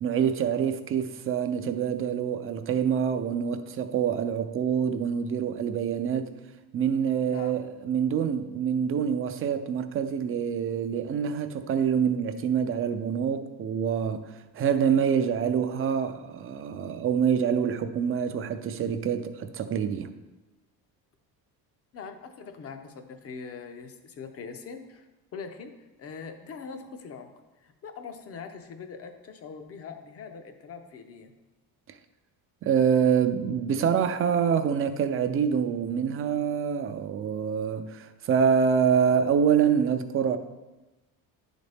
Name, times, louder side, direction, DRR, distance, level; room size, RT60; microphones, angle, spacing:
voice 1, 0.0-6.3 6.7-20.1 32.6-40.4, right 7 dB, 35° right, 0.5 m, -26 dB
voice 2, 7.3-7.6 21.9-25.0 25.3-25.7 26.0-27.3 27.6-31.3, left 5 dB, 40° left, 0.7 m, -42 dB
10.0 x 4.1 x 3.4 m
cardioid pair, 140°, 37 cm